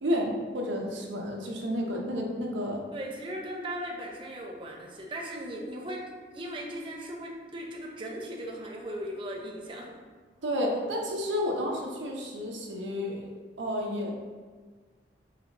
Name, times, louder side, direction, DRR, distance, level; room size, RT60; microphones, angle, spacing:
voice 1, 0.0-2.8 10.4-13.3 13.6-14.1, equal, 80° right, 0 dB, 0.7 m, -31 dB
voice 2, 2.9-9.9, right 1 dB, 25° right, -2 dB, 0.5 m, -38 dB
4.1 x 3.3 x 2.9 m, 1.5 s
head